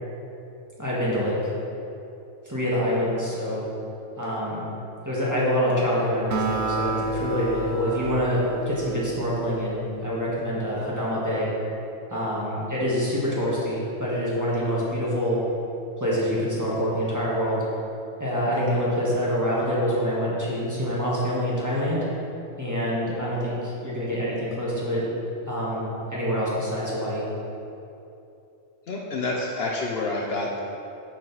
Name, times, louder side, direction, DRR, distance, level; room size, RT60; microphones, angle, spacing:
voice 1, 0.8-1.4 2.4-3.6 4.2-4.6 5.0-11.5 12.1-15.4 16.0-17.6 18.2-22.0 22.6-25.0 25.5-27.2, equal, 15° right, -7 dB, 1.4 m, -26 dB
Acoustic guitar, 6.3-9.9, right 3 dB, 65° right, 0.9 m, -30 dB
voice 2, 28.9-30.6, left 2 dB, 60° left, -2 dB, 0.8 m, -28 dB
6.4 x 6.2 x 4.0 m, 2.8 s
omnidirectional pair, 1.3 m